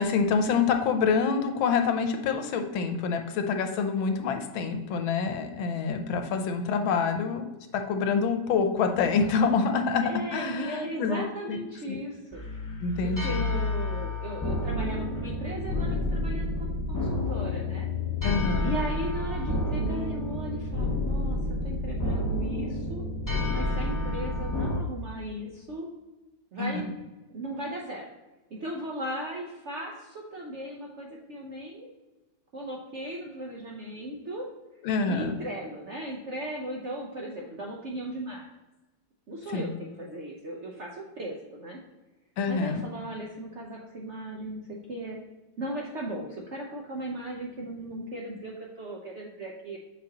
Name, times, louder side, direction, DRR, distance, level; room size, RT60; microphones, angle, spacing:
voice 1, 0.0-7.4 7.7-10.0 10.3-11.6 11.9-12.0 12.8-13.5 18.2-18.7 26.6-26.9 34.8-35.3 39.5-39.7 42.4-42.8, left 5 dB, 85° left, 6 dB, 1.5 m, -27 dB
voice 2, 10.0-12.4 13.0-17.8 18.6-23.0 23.5-25.9 26.5-26.9 27.3-28.1 28.5-31.9 32.5-34.5 35.1-38.5 39.3-41.8 42.5-45.2 45.6-49.8, right 1 dB, 60° right, -2 dB, 0.7 m, -37 dB
sound 1, 12.3-24.8, left 2 dB, 30° left, 0.3 m, -29 dB
7.2 x 5.3 x 2.8 m, 1.1 s
omnidirectional pair, 2.1 m